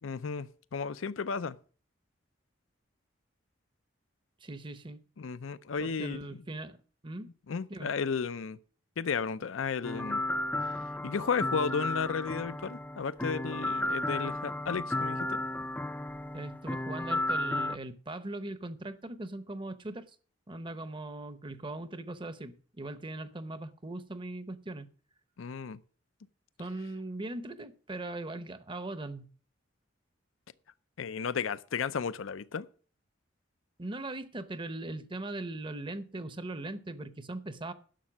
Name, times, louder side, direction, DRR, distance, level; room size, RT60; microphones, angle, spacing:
voice 1, 0.0-1.6 5.2-6.2 7.5-8.6 9.0-10.2 11.0-15.4 25.4-25.8 31.0-32.7, left 5 dB, 80° left, 0.5 m, -33 dB
voice 2, 4.4-5.0 5.8-6.8 7.0-7.3 7.7-7.9 16.3-20.1 20.5-24.9 26.6-29.3 33.8-37.7, right 2 dB, 25° right, 0.8 m, -40 dB
sound 1, 9.8-17.8, left 1 dB, 10° left, 0.4 m, -33 dB
11.5 x 6.6 x 6.1 m
head